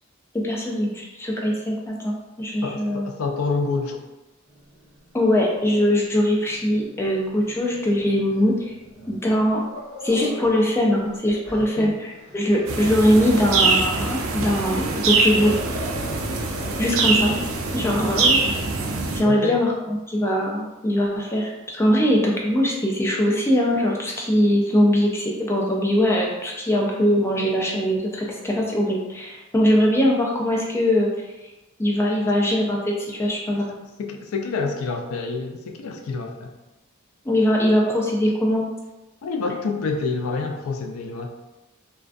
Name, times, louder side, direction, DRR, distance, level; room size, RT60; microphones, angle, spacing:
voice 1, 0.4-3.1 5.1-8.7 9.1-9.6 10.0-12.1 12.3-15.6 16.8-17.4 17.7-18.4 19.1-31.1 31.8-33.7 37.3-38.6, equal, 10° left, -2 dB, 0.4 m, -21 dB
voice 2, 2.6-4.0 11.8-12.0 14.4-14.5 19.2-19.6 34.0-36.6 39.2-41.3, left 4 dB, 85° left, 4 dB, 0.4 m, -27 dB
Growling, 4.5-10.6 11.0-13.4 14.8-19.2, left 1 dB, 30° left, 1.0 m, -39 dB
sound 1, 12.7-19.2, right 4 dB, 65° right, 0.3 m, -23 dB
2.4 x 2.2 x 2.4 m, 1.0 s
head